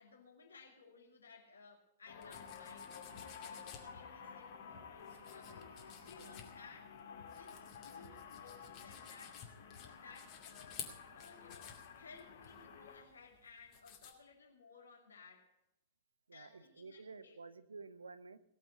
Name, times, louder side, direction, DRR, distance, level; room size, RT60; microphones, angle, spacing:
voice 1, 0.0-7.0 7.3-9.5 9.8-15.5 16.3-17.4, left 4 dB, 70° left, 0 dB, 2.5 m, -59 dB
sound 1, 2.1-13.0, left 6 dB, 55° left, 2.0 m, -53 dB
sound 2, 2.2-14.1, left 8 dB, 35° left, 2.4 m, -54 dB
voice 2, 16.3-18.4, right 4 dB, 75° right, 15 dB, 0.7 m, -52 dB
18.0 x 7.5 x 8.2 m, 0.85 s
figure-of-eight pair, 100°, 0 cm